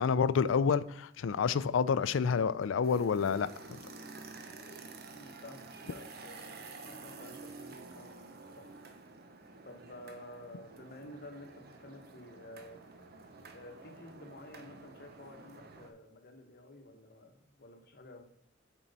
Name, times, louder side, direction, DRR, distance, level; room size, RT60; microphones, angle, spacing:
voice 1, 0.0-3.5, left 6 dB, 70° left, 0.4 m, -28 dB
sound 1, 2.8-15.9, right 3 dB, 50° right, 0.8 m, -50 dB
voice 2, 5.1-8.7 9.6-12.8 13.5-18.2, left 1 dB, 50° left, 1.0 m, -51 dB
7.2 x 4.6 x 4.0 m
head